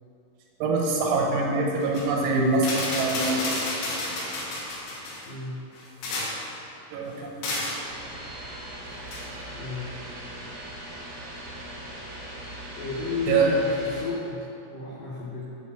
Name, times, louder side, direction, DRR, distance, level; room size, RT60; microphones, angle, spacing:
voice 1, 0.6-3.5 6.9-7.5 13.3-13.5, right 3 dB, 75° right, -2 dB, 3.5 m, -24 dB
sound 1, 1.8-2.1 2.5-5.3 5.8-6.5 7.4-7.8 9.1-9.3, left 2 dB, 60° left, 3.2 m, -31 dB
voice 2, 5.2-5.6 9.5-10.0 12.7-14.4 14.7-15.5, left 3 dB, 85° left, -7 dB, 1.8 m, -32 dB
sound 2, 7.8-14.0, right 1 dB, 50° right, 2.3 m, -40 dB
8.1 x 6.1 x 7.1 m, 2.8 s
omnidirectional pair, 5.8 m